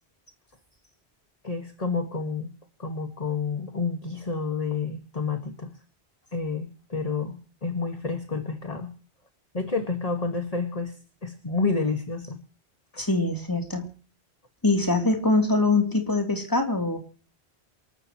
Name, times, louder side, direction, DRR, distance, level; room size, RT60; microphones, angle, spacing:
voice 1, 1.4-2.5 2.8-5.7 6.3-8.9 9.5-12.4 12.9-13.0, left 4 dB, 35° left, 6 dB, 1.8 m, -29 dB
voice 2, 13.0-13.9 14.6-17.0, left 2 dB, 20° left, 4 dB, 3.2 m, -23 dB
28.0 x 13.5 x 3.1 m, 0.38 s
omnidirectional pair, 1.1 m